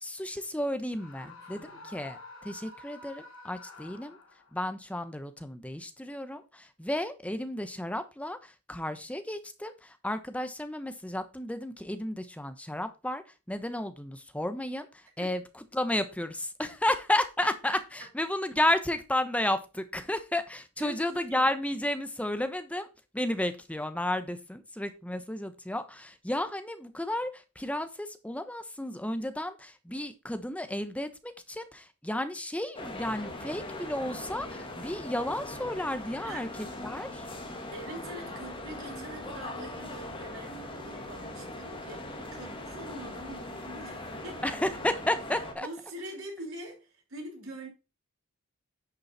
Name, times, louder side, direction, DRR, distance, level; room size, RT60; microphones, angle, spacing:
voice 1, 0.0-4.2 4.5-22.9 23.1-37.3 44.4-45.7, left 1 dB, 5° left, 1.1 m, -32 dB
Screaming, 0.9-4.6, left 2 dB, 70° left, 3.0 m, -49 dB
voice 2, 1.2-1.9 15.2-15.3 20.8-21.5 36.2-36.5 37.7-44.6 45.3-47.7, right 1 dB, 65° right, 5.5 m, -44 dB
sound 1, 32.7-45.5, left 1 dB, 25° left, 1.9 m, -40 dB
10.5 x 6.3 x 4.3 m
head